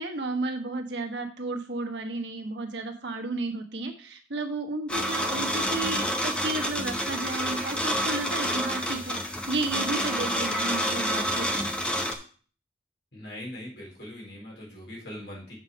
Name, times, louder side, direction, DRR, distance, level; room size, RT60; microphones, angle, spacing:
voice 1, 0.0-11.7, right 2 dB, 75° right, 4 dB, 1.3 m, -33 dB
sound 1, 4.9-12.2, equal, 5° left, 0.7 m, -28 dB
voice 2, 13.1-15.5, left 1 dB, 70° left, -4 dB, 4.0 m, -41 dB
7.4 x 5.1 x 5.1 m, 0.42 s
head